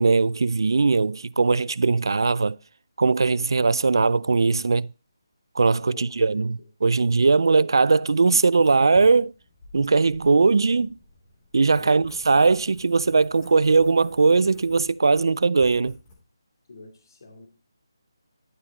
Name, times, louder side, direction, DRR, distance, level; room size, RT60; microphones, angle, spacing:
voice 1, 0.0-2.6 3.0-4.9 5.6-9.3 9.7-11.0 11.5-16.0, right 4 dB, 75° right, 0.3 m, -20 dB
voice 2, 5.9-6.7 7.4-7.6 11.8-12.5 16.7-17.5, left 3 dB, 55° left, 2.5 m, -46 dB
Writing, 8.5-16.1, left 2 dB, 25° left, 2.8 m, -51 dB
11.0 x 5.0 x 4.1 m
figure-of-eight pair, 160°, 2 cm